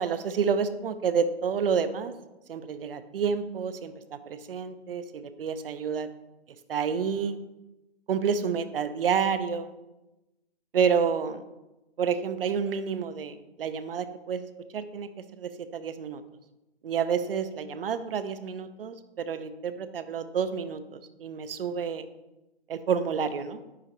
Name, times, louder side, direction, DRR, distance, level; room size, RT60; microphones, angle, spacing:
voice 1, 0.0-2.1 2.5-6.1 6.7-7.4 8.1-9.7 10.7-11.4 12.0-14.5 14.7-15.1 15.4-16.2 16.8-22.0 22.7-23.6, right 6 dB, 60° right, 12 dB, 0.6 m, -29 dB
9.7 x 3.8 x 3.0 m, 1.0 s
hypercardioid pair, 165°, 32 cm